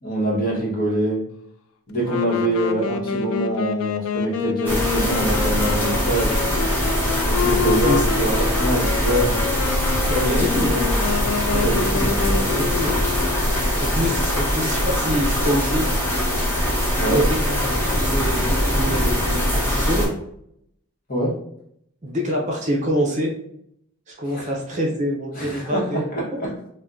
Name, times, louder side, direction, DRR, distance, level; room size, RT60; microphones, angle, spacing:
voice 1, 0.0-1.2 1.9-6.4 7.2-9.4 11.5-12.6 17.0-17.2 21.1-21.4 24.3-24.5 25.3-26.5, right 1 dB, 40° left, -5 dB, 1.0 m, -24 dB
Wind instrument woodwind instrument, 2.0-13.7, left 6 dB, 70° left, 0.3 m, -27 dB
sound 1, 4.7-20.1, equal, 10° left, 0.7 m, -22 dB
voice 2, 7.7-8.0 10.1-10.8 12.4-13.0 13.8-15.8 16.9-17.6 17.9-20.1 22.0-23.3 24.1-26.4, equal, 35° right, -1 dB, 0.6 m, -25 dB
2.6 x 2.2 x 3.5 m, 0.72 s
head